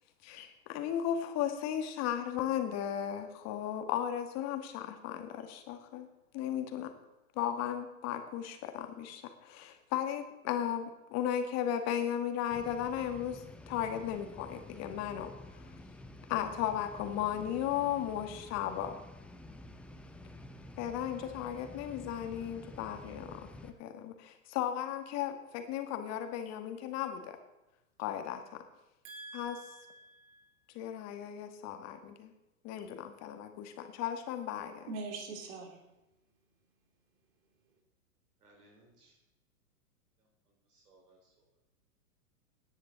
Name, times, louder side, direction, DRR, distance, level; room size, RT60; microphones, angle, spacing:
voice 1, 0.2-6.1 6.3-6.9 7.3-15.3 16.3-19.0 20.8-27.4 28.0-28.6 29.3-29.6 30.7-32.3 32.6-34.9, left 10 dB, 35° left, 7 dB, 1.7 m, -35 dB
sound 1, 12.5-23.7, left 1 dB, 5° left, 0.5 m, -50 dB
voice 2, 29.0-30.4 34.9-35.8, right 3 dB, 60° right, 2 dB, 3.2 m, -44 dB
voice 3, 38.4-39.2 40.2-41.5, right 2 dB, 80° right, 0 dB, 3.9 m, -65 dB
17.0 x 10.5 x 4.0 m, 0.97 s
hypercardioid pair, 110°, 46 cm